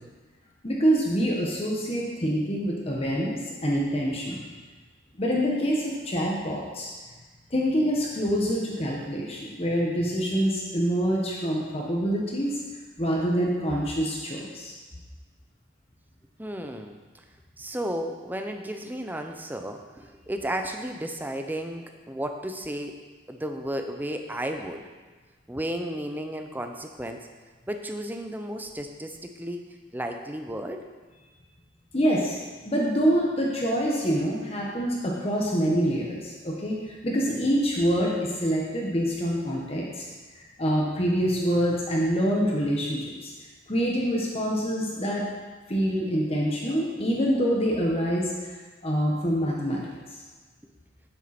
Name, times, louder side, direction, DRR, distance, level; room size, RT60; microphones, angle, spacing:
voice 1, 0.6-4.4 5.2-6.9 7.5-12.5 13.0-14.7 31.9-32.4 32.6-36.8 37.0-40.0 40.6-43.3 43.7-45.2 45.7-48.3 48.8-49.8, equal, 30° left, -3 dB, 1.3 m, -26 dB
voice 2, 16.4-17.2 17.6-23.0 23.3-24.9 25.5-27.3 27.7-29.7 29.9-30.9, right 1 dB, 10° right, 5 dB, 0.6 m, -33 dB
9.3 x 8.3 x 4.3 m, 1.3 s
head